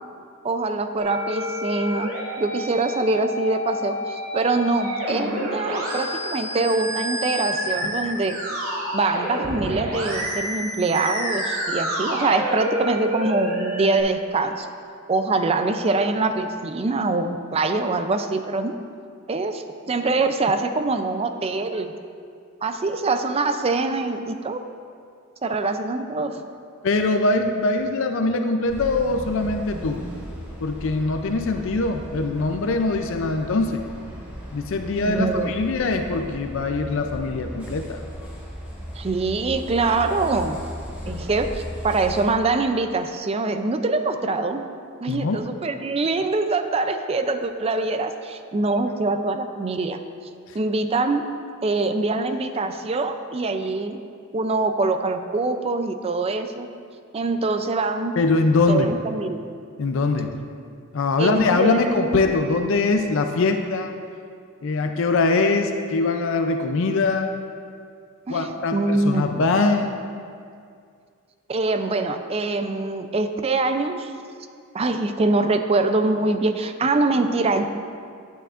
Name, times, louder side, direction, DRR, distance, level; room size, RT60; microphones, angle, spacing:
voice 1, 0.4-8.4 8.9-14.7 15.1-18.8 19.3-21.9 22.6-24.6 25.4-26.4 35.1-35.5 39.0-40.6 41.1-44.6 45.0-50.0 50.5-51.3 51.6-54.0 54.3-56.7 57.1-58.1 58.7-59.5 61.2-62.2 68.3-69.4 71.5-74.1 74.7-77.7, right 3 dB, 30° right, 8 dB, 0.4 m, -24 dB
Musical instrument, 1.0-14.0, equal, 80° right, 1.8 m, -29 dB
voice 2, 26.8-30.0 30.6-33.8 34.5-38.0 41.1-41.2 45.1-45.4 58.2-58.9 59.8-60.3 60.9-63.9 64.6-67.3 68.3-70.0, left 3 dB, 65° left, 5 dB, 0.5 m, -22 dB
sound 1, 28.7-42.2, equal, 10° right, 1.6 m, -37 dB
10.0 x 9.2 x 2.5 m, 2.3 s
head